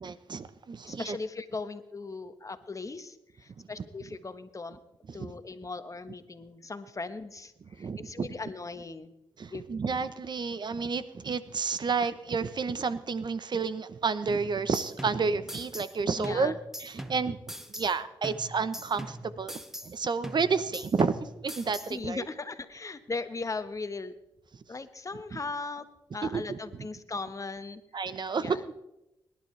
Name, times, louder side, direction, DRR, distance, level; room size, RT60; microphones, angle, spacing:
voice 1, 0.0-1.2 3.6-3.7 5.1-5.3 7.8-8.3 9.4-16.5 16.8-17.4 17.7-19.5 19.8-22.3 25.3-25.4 26.3-26.6 27.9-28.6, right 5 dB, 50° right, 14 dB, 0.8 m, -30 dB
voice 2, 0.8-4.8 5.1-9.1 9.5-9.6 16.2-16.6 21.8-24.1 24.7-25.9 26.1-27.8 28.4-28.8, left 3 dB, 35° left, 10 dB, 1.2 m, -38 dB
sound 1, 14.3-16.0 16.2-18.0 18.2-20.0 20.2-22.0, equal, 5° right, 1.2 m, -42 dB
21.5 x 11.5 x 3.3 m, 0.89 s
cardioid pair, 60°, 9 cm